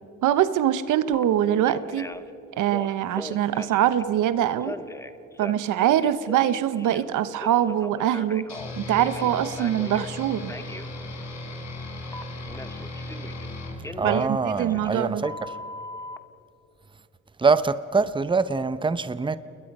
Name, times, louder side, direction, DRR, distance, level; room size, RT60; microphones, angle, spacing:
voice 1, 0.2-2.1 2.6-4.8 5.4-8.5 8.8-10.5 14.0-15.3, right 11 dB, 80° right, 1.0 m, -23 dB
Telephone, 1.1-1.2 1.6-2.3 2.6-4.0 4.6-7.1 7.4-10.1 10.5-10.8 12.1-13.5 13.8-16.2, left 2 dB, 10° left, 0.9 m, -39 dB
sound 1, 8.5-13.8, left 2 dB, 60° left, 5.3 m, -36 dB
voice 2, 13.8-15.6 17.4-19.4, right 4 dB, 15° right, 0.8 m, -24 dB
29.5 x 21.0 x 5.5 m
cardioid pair, 90°, 30 cm